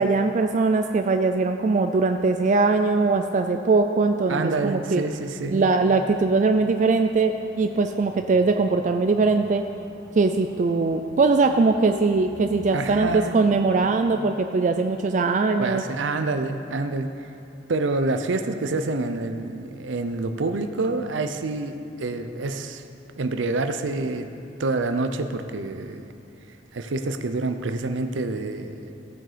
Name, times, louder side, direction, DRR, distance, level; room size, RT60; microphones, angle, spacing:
voice 1, 0.0-5.0 5.5-9.6 10.1-15.8, right 3 dB, 40° right, 6 dB, 0.4 m, -21 dB
voice 2, 4.3-5.6 12.7-13.4 15.6-17.1 17.7-22.8 23.2-24.3 24.6-26.0 26.7-28.9, right 3 dB, 85° right, 8 dB, 0.6 m, -27 dB
sound 1, 5.8-14.1, equal, 15° left, 2.0 m, -43 dB
16.5 x 7.6 x 5.0 m, 2.7 s
head